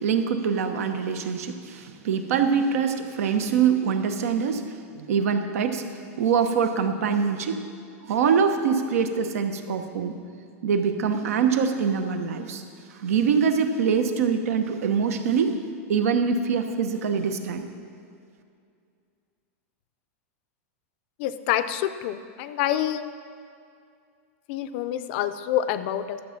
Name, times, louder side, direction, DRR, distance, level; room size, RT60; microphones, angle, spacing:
voice 1, 0.0-4.6 4.9-5.8 6.2-7.6 8.0-10.2 10.6-12.6 13.0-15.5 15.9-17.6, right 6 dB, 80° right, 7 dB, 1.1 m, -24 dB
voice 2, 21.2-23.1 24.5-26.2, left 11 dB, 45° left, 12 dB, 0.5 m, -27 dB
12.0 x 7.5 x 5.9 m, 2.4 s
supercardioid pair, 160°, 8 cm